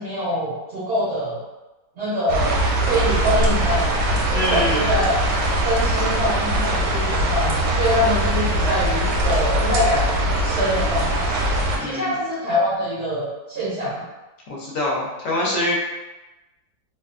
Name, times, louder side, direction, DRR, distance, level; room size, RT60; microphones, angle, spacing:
voice 1, 0.0-1.4 2.0-5.2 5.6-10.1 10.4-11.3 11.8-14.1, equal, 60° right, -8 dB, 0.7 m, -24 dB
sound 1, 2.3-11.8, right 1 dB, 80° right, 1.2 m, -21 dB
voice 2, 4.3-4.9 11.8-12.1 14.5-15.8, left 1 dB, 65° left, -5 dB, 0.9 m, -24 dB
2.8 x 2.2 x 2.4 m, 1.1 s
omnidirectional pair, 1.8 m